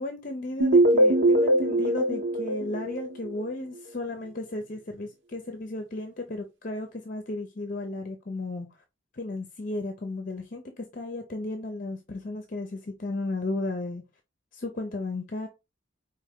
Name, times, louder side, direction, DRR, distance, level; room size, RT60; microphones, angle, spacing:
voice 1, 0.0-8.7 9.1-14.0 14.5-15.5, left 2 dB, 45° left, 0.7 m, -34 dB
sound 1, 0.6-3.5, right 1 dB, 85° right, 1.0 m, -22 dB
4.7 x 2.9 x 3.6 m
head